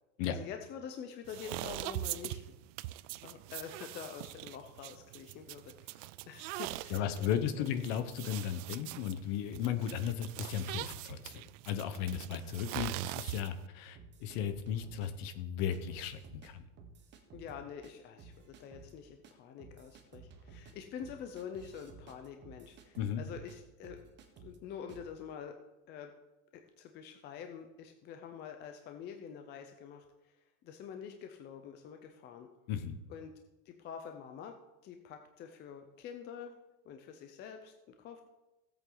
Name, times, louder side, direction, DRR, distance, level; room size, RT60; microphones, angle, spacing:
voice 1, 0.3-2.5 3.2-7.7 17.3-24.0 24.4-25.6 25.9-26.1 26.5-30.3 30.6-32.5 33.1-33.3 33.7-36.6 36.8-38.2, left 7 dB, 25° left, 6 dB, 0.6 m, -47 dB
sound 1, 1.3-13.7, right 17 dB, 60° right, 0.5 m, -42 dB
voice 2, 6.9-16.6 23.0-23.2 32.7-33.0, left 9 dB, 45° left, 11 dB, 1.1 m, -35 dB
sound 2, 14.0-15.1 15.7-16.5 16.8-17.9 18.2-18.9 19.2-19.3 19.6-23.6 23.8-24.6 24.9-25.1, right 5 dB, 25° right, 1.2 m, -54 dB
16.0 x 8.3 x 3.9 m, 1.0 s
supercardioid pair, 160°, 44 cm